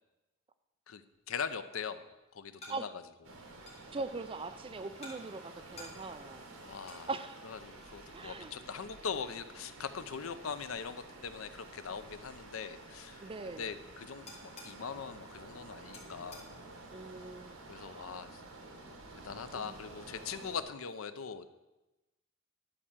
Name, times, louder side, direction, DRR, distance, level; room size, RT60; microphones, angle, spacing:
voice 1, 0.9-2.1 2.3-2.9 6.6-7.1 7.6-13.2 13.6-16.5 17.7-18.4 19.2-21.5, left 6 dB, 75° left, 12 dB, 0.6 m, -41 dB
sound 1, 1.1-19.7, left 1 dB, 30° left, 2.7 m, -59 dB
sound 2, 3.2-20.6, right 2 dB, 80° right, 1.8 m, -51 dB
voice 2, 3.9-6.4 7.1-7.4 8.1-8.5 13.2-13.7 16.9-18.2 19.5-19.8, right 3 dB, 25° right, 11 dB, 0.4 m, -41 dB
11.0 x 4.9 x 7.2 m, 1.0 s
head